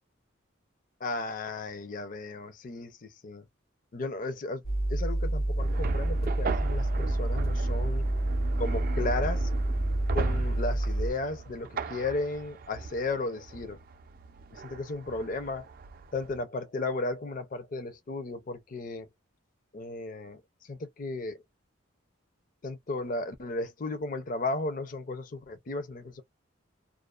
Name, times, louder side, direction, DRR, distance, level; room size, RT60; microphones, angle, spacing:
voice 1, 1.0-3.4 3.9-4.6 4.9-8.1 8.6-9.5 10.1-13.8 14.5-15.7 16.1-19.1 19.7-21.4 22.6-26.2, left 2 dB, 40° left, 0.4 m, -34 dB
sound 1, 4.6-11.1, right 1 dB, 85° left, 1.0 m, -28 dB
sound 2, 5.6-16.4, right 4 dB, 45° right, 0.3 m, -38 dB
2.4 x 2.3 x 2.3 m
head